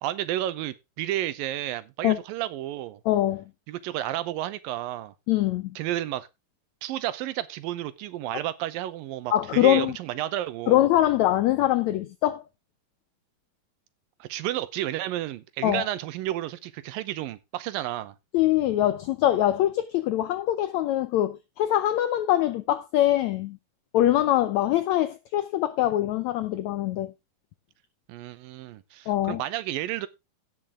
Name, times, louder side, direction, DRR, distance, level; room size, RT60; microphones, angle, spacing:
voice 1, 0.0-3.0 3.7-5.1 5.8-6.3 6.8-10.8 14.2-18.2 28.1-30.1, right 13 dB, 85° right, 2.6 m, -31 dB
voice 2, 3.0-3.4 5.3-5.8 9.3-9.9 10.7-12.4 15.6-15.8 18.3-23.6 23.9-27.1 29.1-29.4, left 13 dB, 85° left, 1.6 m, -23 dB
16.5 x 6.0 x 3.6 m
omnidirectional pair, 4.0 m